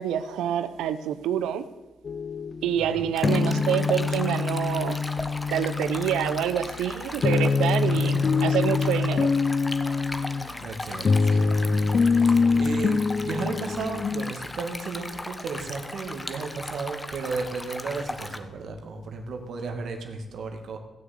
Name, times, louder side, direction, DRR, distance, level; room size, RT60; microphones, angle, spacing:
voice 1, 0.0-1.6 2.6-5.0 5.5-9.3, right 10 dB, 85° right, 13 dB, 0.8 m, -27 dB
sound 1, 2.0-14.3, left 4 dB, 50° left, 0.8 m, -25 dB
voice 2, 2.7-3.1 7.8-8.2 10.6-11.7 12.1-20.8, right 4 dB, 65° right, 4 dB, 2.0 m, -34 dB
Stream, 3.1-18.4, left 2 dB, 15° left, 1.2 m, -37 dB
16.0 x 6.5 x 8.4 m, 1.1 s
supercardioid pair, 65°, 0 cm